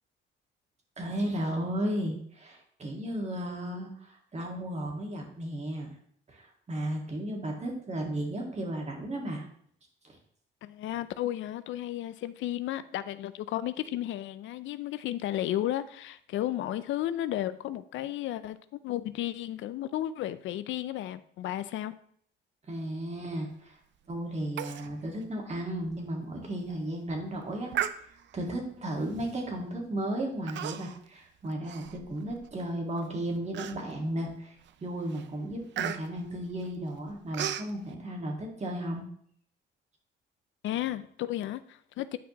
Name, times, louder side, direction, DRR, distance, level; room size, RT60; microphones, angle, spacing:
voice 1, 1.0-5.9 6.3-9.4 10.0-10.2 22.7-23.8 24.1-27.7 28.0-34.6 34.8-39.1, right 1 dB, 35° right, 1.9 m, -34 dB
voice 2, 10.6-21.9 40.6-42.2, left 13 dB, 75° left, 0.4 m, -33 dB
Human voice, 24.6-24.9 25.2-25.3 25.8-25.9 26.5-26.8 27.7-28.4 29.2-29.4 30.5-31.1 31.4-32.5 33.0-33.1 33.5-34.1 34.6-34.8 35.1-37.7, right 10 dB, 65° right, 0.5 m, -36 dB
8.9 x 5.0 x 3.0 m
cardioid pair, 90°, 20 cm